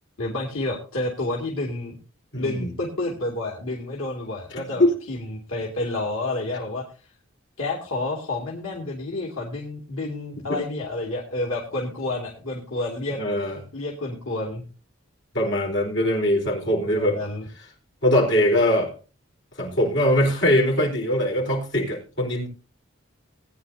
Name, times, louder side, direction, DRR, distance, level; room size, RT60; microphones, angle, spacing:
voice 1, 0.2-2.0 2.4-6.8 7.6-14.6 16.9-17.5, left 2 dB, 80° left, -1 dB, 2.4 m, -30 dB
voice 2, 2.3-2.7 4.7-4.9 10.5-10.6 13.2-13.6 15.3-17.2 18.0-18.9 19.6-22.5, left 1 dB, 60° left, -1 dB, 4.4 m, -22 dB
19.0 x 9.6 x 2.7 m, 0.35 s
head